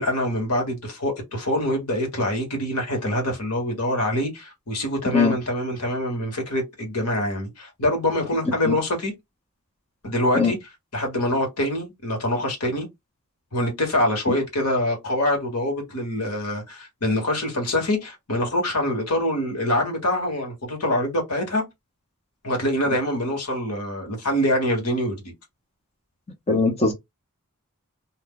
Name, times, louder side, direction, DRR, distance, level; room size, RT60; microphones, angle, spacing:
voice 1, 0.0-9.1 10.0-10.6 10.9-12.9 13.5-21.6 22.4-25.3, left 1 dB, 85° left, 1.5 m, -25 dB
voice 2, 26.5-26.9, left 4 dB, 30° left, 0.7 m, -20 dB
2.7 x 2.2 x 3.6 m
head